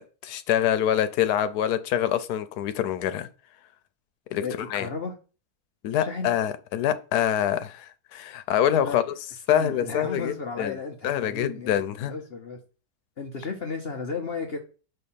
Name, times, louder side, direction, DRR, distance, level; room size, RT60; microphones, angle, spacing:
voice 1, 0.0-3.3 4.3-4.4 4.7-4.9 5.8-9.0 9.5-10.8 11.0-12.1, left 10 dB, 90° left, 1.2 m, -25 dB
voice 2, 4.4-5.1 6.0-6.3 8.8-9.0 9.5-12.6 13.2-14.6, left 4 dB, 50° left, 0.8 m, -34 dB
5.7 x 3.4 x 5.5 m
omnidirectional pair, 1.6 m